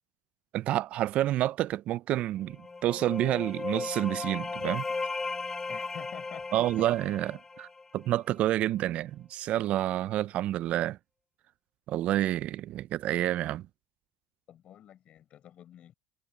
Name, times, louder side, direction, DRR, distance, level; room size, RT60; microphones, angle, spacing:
voice 1, 0.5-2.6 2.8-4.8 6.5-7.7 7.9-11.0 11.9-13.7, right 13 dB, 55° right, 0.4 m, -29 dB
sound 1, 2.5-8.2, left 3 dB, 15° left, 0.5 m, -36 dB
voice 2, 5.7-6.9 14.5-15.9, left 11 dB, 45° left, 5.8 m, -48 dB
supercardioid pair, 115°, 3 cm